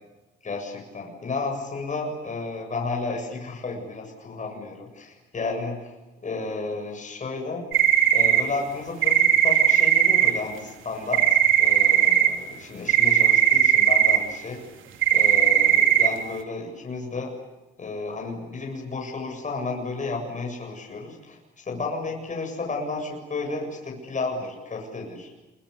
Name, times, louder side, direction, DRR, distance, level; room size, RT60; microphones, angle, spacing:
voice 1, 0.4-5.9 6.2-7.6 8.1-14.6 15.1-17.3 17.8-25.3, left 3 dB, 40° left, 1 dB, 7.6 m, -32 dB
sound 1, 7.7-8.4 9.0-10.3 11.1-12.3 12.9-14.2 15.0-16.1, right 10 dB, 80° right, 3.1 m, -18 dB
27.5 x 23.5 x 8.4 m, 1.1 s
cardioid pair, 90°, 20 cm